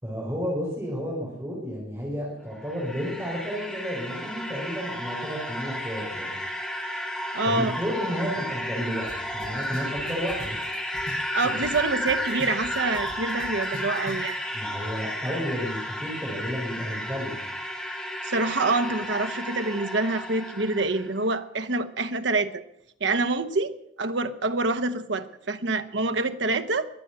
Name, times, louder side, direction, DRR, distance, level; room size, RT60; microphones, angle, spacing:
voice 1, 0.0-6.3 7.4-10.6 11.4-11.6 14.5-17.4, equal, 15° right, -4 dB, 4.2 m, -32 dB
sound 1, 2.4-21.1, equal, 5° left, 2.9 m, -33 dB
voice 2, 7.3-7.8 11.3-14.4 18.2-22.6 23.0-26.9, right 3 dB, 90° right, 8 dB, 1.0 m, -26 dB
sound 2, 9.1-9.2 9.4-11.8 12.1-14.3, equal, 50° left, 7.9 m, -41 dB
22.0 x 8.2 x 7.9 m, 0.75 s
head